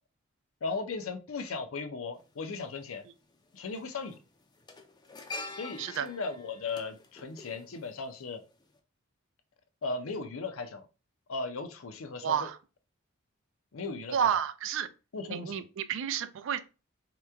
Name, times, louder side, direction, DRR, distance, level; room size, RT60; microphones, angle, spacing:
voice 1, 0.6-3.0 3.5-4.2 5.6-8.4 9.8-10.9 11.3-12.4 13.7-14.2 15.1-15.6, left 4 dB, 75° left, 0.5 m, -37 dB
sound 1, 2.2-2.3 3.5-3.8 4.0-8.3 8.6-8.8, left 2 dB, 20° left, 0.4 m, -45 dB
voice 2, 12.2-12.6 14.1-14.9 15.3-16.6, right 8 dB, 65° right, 0.3 m, -30 dB
2.9 x 2.2 x 3.4 m
head